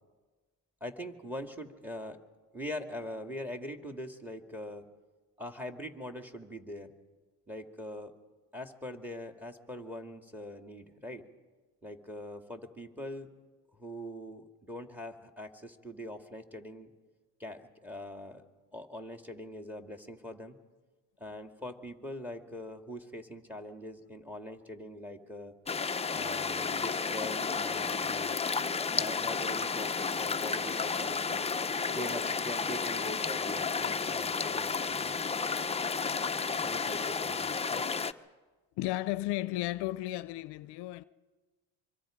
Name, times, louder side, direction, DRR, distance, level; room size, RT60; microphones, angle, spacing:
voice 1, 0.8-2.2 2.5-4.8 5.4-6.9 7.5-8.1 8.5-11.2 11.8-13.3 13.7-16.9 17.4-18.5 18.7-20.6 21.2-25.5 26.1-29.9 30.2-31.5 31.9-35.2 36.6-37.9, left 1 dB, 5° right, 2.3 m, -42 dB
sound 1, 25.7-38.1, left 5 dB, 15° left, 0.7 m, -32 dB
voice 2, 38.8-41.0, left 16 dB, 75° left, 0.6 m, -34 dB
25.0 x 24.5 x 5.1 m
supercardioid pair, 80°, 40 cm